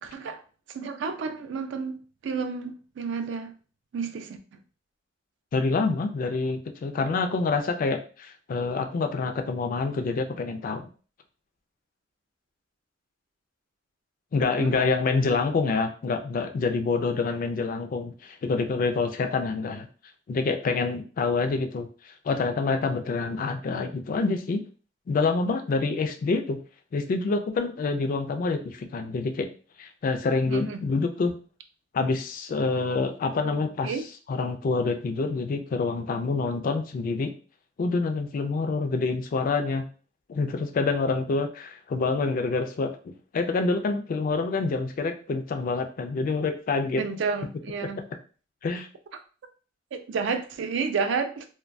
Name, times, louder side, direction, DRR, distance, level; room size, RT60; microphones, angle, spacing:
voice 1, 0.7-3.5 3.9-4.4 14.6-14.8 30.5-30.8 33.4-34.1 47.0-48.0 49.9-51.5, right 5 dB, 65° right, 8 dB, 0.3 m, -31 dB
voice 2, 5.5-10.9 14.3-19.9 20.3-24.6 25.1-26.6 26.9-29.5 29.8-31.4 31.9-33.9 34.3-37.3 37.8-39.9 40.3-43.0 43.3-47.0 48.6-48.9, left 4 dB, 45° left, 6 dB, 0.3 m, -27 dB
2.2 x 2.2 x 2.5 m, 0.38 s
head